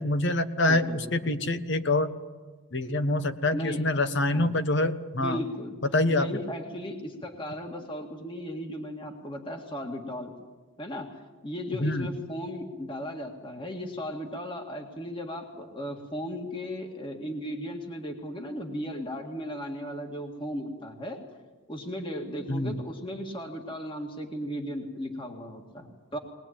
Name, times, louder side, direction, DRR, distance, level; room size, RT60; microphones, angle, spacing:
voice 1, 0.0-2.1 2.7-5.4 5.9-6.3 11.8-12.1 22.5-22.7, left 2 dB, 55° left, 10 dB, 1.3 m, -25 dB
voice 2, 0.7-1.3 3.5-3.8 4.3-4.5 5.2-5.7 6.1-10.3 10.8-21.2 21.7-26.2, equal, 25° left, 3 dB, 2.0 m, -36 dB
21.5 x 20.0 x 8.9 m, 1.3 s
head